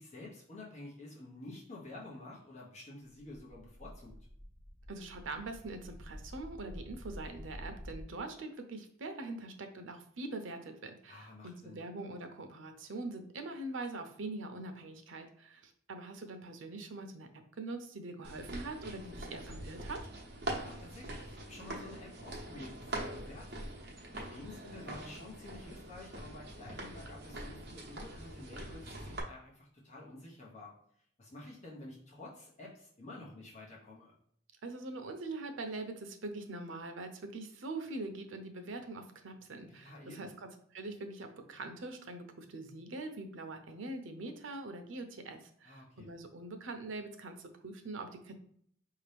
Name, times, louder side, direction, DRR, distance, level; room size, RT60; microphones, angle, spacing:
voice 1, 0.0-4.1 11.1-11.8 20.5-23.6 24.1-30.7 31.2-34.1 39.7-40.4 45.6-46.1, left 2 dB, 40° left, -4 dB, 1.0 m, -50 dB
sound 1, 3.4-8.0, equal, 10° right, 1.3 m, -49 dB
voice 2, 4.9-17.3 17.6-20.0 34.6-48.4, right 2 dB, 90° right, 6 dB, 0.7 m, -43 dB
sound 2, 18.2-29.2, right 1 dB, 60° right, 1.0 m, -43 dB
5.1 x 2.8 x 3.3 m, 0.66 s
head